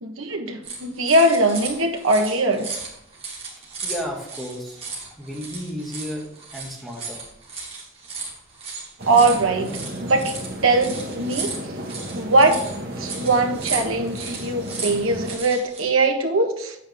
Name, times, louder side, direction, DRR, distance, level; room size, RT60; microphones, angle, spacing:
voice 1, 0.0-2.7 9.0-9.7 10.0-10.3 10.6-11.5 12.1-12.6 13.0-16.8, right 2 dB, 85° right, 3 dB, 1.5 m, -20 dB
sound 1, 0.6-15.8, right 4 dB, 30° right, 2.8 m, -35 dB
voice 2, 3.8-4.8 5.2-6.2 6.5-7.2, equal, ahead, -4 dB, 2.2 m, -33 dB
sound 2, 9.0-15.4, equal, 45° right, 1.7 m, -33 dB
9.5 x 8.5 x 3.7 m, 0.77 s
head